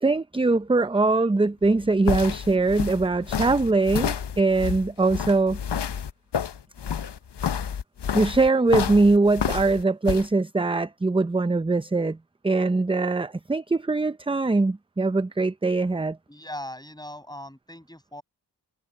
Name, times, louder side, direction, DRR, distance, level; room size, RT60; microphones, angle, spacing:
voice 1, 0.0-5.6 8.1-12.2 12.4-16.2, right 3 dB, 15° right, 0.5 m, -22 dB
sound 1, 1.6-10.3, left 8 dB, 75° left, 0.9 m, -29 dB
voice 2, 16.3-18.2, left 1 dB, 10° left, 6.2 m, -40 dB
cardioid pair, 50°, 42 cm